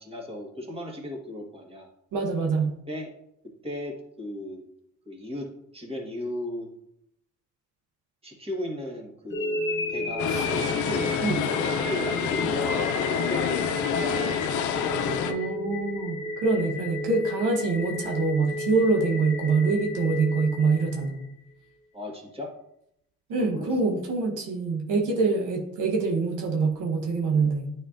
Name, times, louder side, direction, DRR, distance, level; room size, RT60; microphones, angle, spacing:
voice 1, 0.0-1.9 2.9-3.1 3.6-4.6 5.1-5.5 5.7-6.7 8.2-9.6 9.9-14.3 21.9-22.5 23.4-23.7, left 1 dB, 20° right, 0 dB, 1.6 m, -36 dB
voice 2, 2.1-2.8 10.3-10.5 11.2-11.4 15.2-21.2 23.3-27.7, right 4 dB, 90° right, 1 dB, 1.1 m, -25 dB
sound 1, 9.3-21.3, left 1 dB, 40° left, 1.1 m, -33 dB
sound 2, 10.2-15.3, left 7 dB, 80° left, 0.6 m, -27 dB
9.2 x 4.3 x 2.5 m, 0.76 s
cardioid pair, 90°, 30 cm